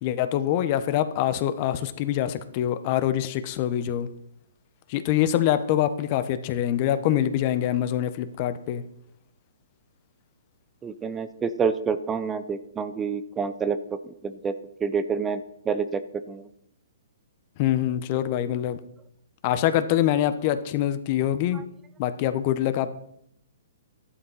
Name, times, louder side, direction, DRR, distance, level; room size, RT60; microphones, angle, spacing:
voice 1, 0.0-4.1 4.9-8.8 17.6-18.8 19.4-21.6 22.0-22.9, left 11 dB, 40° left, 11 dB, 1.2 m, -24 dB
voice 2, 10.8-14.5 14.8-15.4 15.7-16.0 16.3-16.5, right 5 dB, 15° right, 12 dB, 0.8 m, -28 dB
14.0 x 11.5 x 5.7 m, 0.73 s
hypercardioid pair, 130°, 0 cm